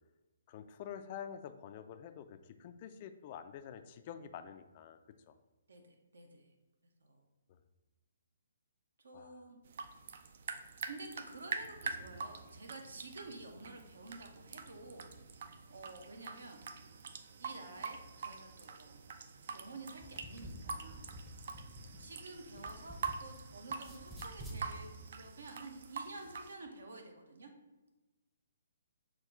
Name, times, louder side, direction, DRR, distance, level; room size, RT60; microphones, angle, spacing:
voice 1, 0.5-5.0 5.3-5.4 7.5-7.6 9.1-9.4, left 8 dB, 35° left, 10 dB, 0.3 m, -48 dB
voice 2, 5.7-6.5 7.0-7.3 9.0-9.6 10.8-16.6 17.4-19.0 19.5-21.1 21.4-21.6 22.0-27.5, right 2 dB, 65° right, 4 dB, 0.7 m, -51 dB
sound 1, 9.7-26.5, right 5 dB, 50° right, 0.3 m, -45 dB
sound 2, 20.0-23.4 23.7-24.6, equal, 5° right, 0.6 m, -50 dB
5.9 x 2.3 x 3.6 m, 1.1 s
figure-of-eight pair, 130°, 0 cm